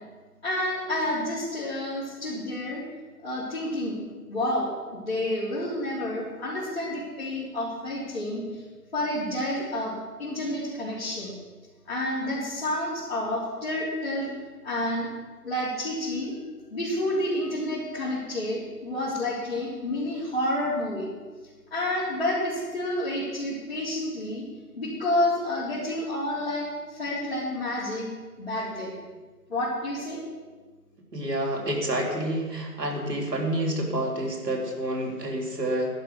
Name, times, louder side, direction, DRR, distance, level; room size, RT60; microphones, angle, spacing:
voice 1, 0.4-2.8 3.2-4.0 4.3-8.6 8.9-11.3 11.9-14.3 14.6-15.1 15.4-16.3 16.7-21.1 21.7-24.5 24.8-28.1 28.4-29.0 29.5-30.2, left 1 dB, 40° left, -10 dB, 3.6 m, -29 dB
voice 2, 31.1-35.9, right 1 dB, 80° right, 0 dB, 3.6 m, -28 dB
11.5 x 11.5 x 6.3 m, 1.4 s
hypercardioid pair, 175°, 48 cm